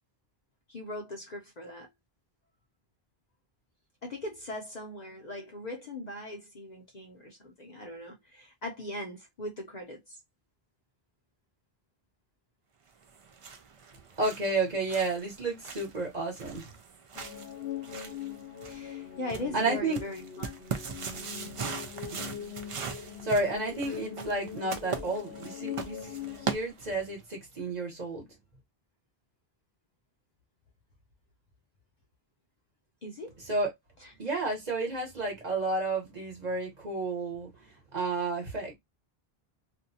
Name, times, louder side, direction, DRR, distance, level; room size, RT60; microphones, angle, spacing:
voice 1, 0.7-1.9 4.0-10.2 17.8-18.0 18.7-20.5 33.0-33.4 34.0-34.1, left 1 dB, 50° left, 0.6 m, -40 dB
sound 1, 13.0-27.2, right 6 dB, 60° right, 0.3 m, -40 dB
voice 2, 14.2-16.6 19.5-20.0 21.6-21.7 22.1-22.2 23.0-28.3 33.5-33.7 34.2-38.8, right 2 dB, 45° right, 1.1 m, -31 dB
sound 2, 17.1-26.6, left 9 dB, 90° left, 0.8 m, -41 dB
2.5 x 2.2 x 2.6 m
omnidirectional pair, 1.0 m